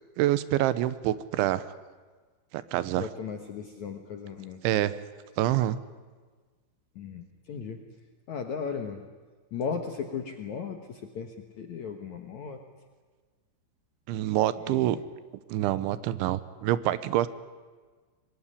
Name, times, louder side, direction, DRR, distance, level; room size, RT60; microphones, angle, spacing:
voice 1, 0.2-1.7 2.5-3.1 4.6-5.0 5.4-5.8 14.1-15.0 15.5-17.3, right 14 dB, 85° right, 15 dB, 3.3 m, -26 dB
voice 2, 3.0-4.6 7.0-7.8 8.3-9.0 9.5-12.6 14.6-15.0, left 6 dB, 65° left, 5 dB, 1.9 m, -36 dB
25.0 x 20.5 x 9.9 m, 1.4 s
omnidirectional pair, 5.2 m